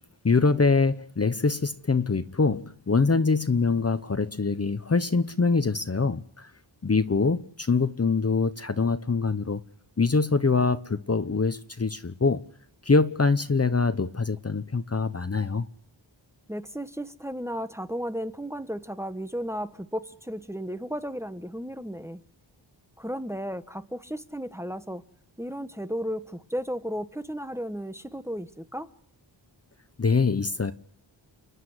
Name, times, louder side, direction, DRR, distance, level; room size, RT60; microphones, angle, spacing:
voice 1, 0.2-6.5 6.8-9.6 10.0-12.4 12.8-15.7 30.0-30.7, left 4 dB, 30° left, 1.0 m, -24 dB
voice 2, 16.5-22.2 23.0-25.0 25.4-28.9, equal, 5° right, 1.2 m, -34 dB
29.5 x 11.0 x 9.7 m
wide cardioid pair, 100°, 46 cm